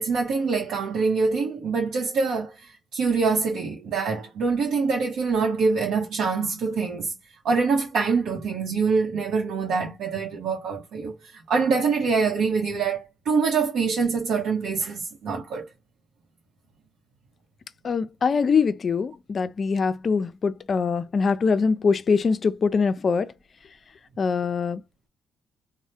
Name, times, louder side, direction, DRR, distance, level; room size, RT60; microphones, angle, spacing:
voice 1, 0.0-7.1 7.4-15.6, right 4 dB, 75° right, 0.8 m, -25 dB
voice 2, 17.8-23.3 24.2-24.8, left 5 dB, 45° left, 0.4 m, -23 dB
3.1 x 2.1 x 2.7 m
cardioid pair, 90°, 0 cm